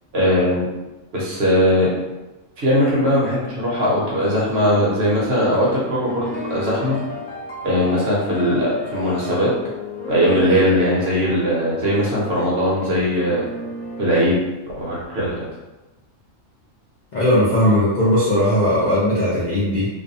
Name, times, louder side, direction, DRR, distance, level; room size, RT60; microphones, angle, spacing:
voice 1, 0.1-0.6 1.1-1.9 2.6-6.9 7.6-9.5 10.1-13.4 14.0-14.3 14.8-15.5, equal, 60° right, -5 dB, 0.9 m, -19 dB
sound 1, 5.5-14.2, left 2 dB, 85° left, 1.0 m, -33 dB
voice 2, 17.1-19.9, equal, 45° left, -10 dB, 0.6 m, -18 dB
2.5 x 2.2 x 2.6 m, 1.1 s
omnidirectional pair, 1.4 m